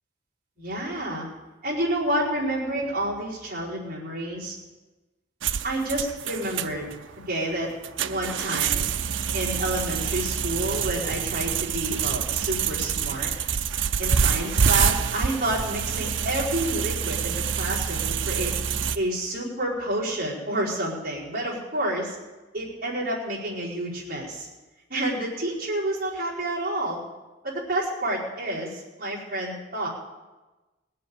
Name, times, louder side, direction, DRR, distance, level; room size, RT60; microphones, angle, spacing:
voice 1, 0.6-1.3 1.6-4.6 5.6-6.9 7.3-7.7 8.0-8.9 9.3-13.3 14.0-18.5 18.9-22.2 22.5-24.5 24.9-27.0 27.4-29.9, right 1 dB, 50° right, -9 dB, 4.9 m, -29 dB
sound 1, 5.4-19.0, right 7 dB, 70° right, 0.6 m, -26 dB
19.5 x 7.8 x 8.7 m, 1.1 s
head